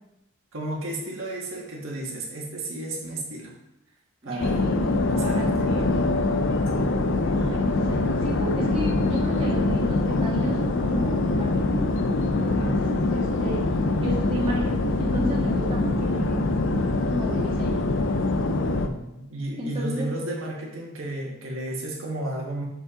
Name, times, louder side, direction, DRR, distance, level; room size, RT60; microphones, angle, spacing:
voice 1, 0.5-3.5 4.2-4.6 5.1-5.8 6.7-7.0 12.6-13.0 18.8-22.6, right 1 dB, 80° right, -3 dB, 1.6 m, -33 dB
voice 2, 4.2-5.9 7.3-11.9 12.4-12.9 13.1-13.6 14.0-17.8 19.6-20.2, equal, 25° right, -5 dB, 1.7 m, -32 dB
sound 1, 4.4-18.9, left 2 dB, 65° left, 0.5 m, -24 dB
6.7 x 5.3 x 3.7 m, 0.87 s
head